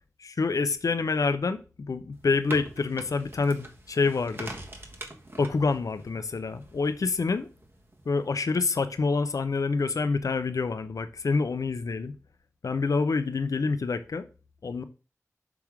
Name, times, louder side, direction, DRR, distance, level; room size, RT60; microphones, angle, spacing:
voice 1, 0.2-1.6 1.9-4.5 5.4-7.5 8.1-12.1 12.6-14.3 14.6-14.8, left 4 dB, 75° left, 10 dB, 0.7 m, -27 dB
sound 1, 2.1-8.3, right 1 dB, 40° right, 1.4 m, -45 dB
6.0 x 3.6 x 6.0 m, 0.33 s
cardioid pair, 45°, 6 cm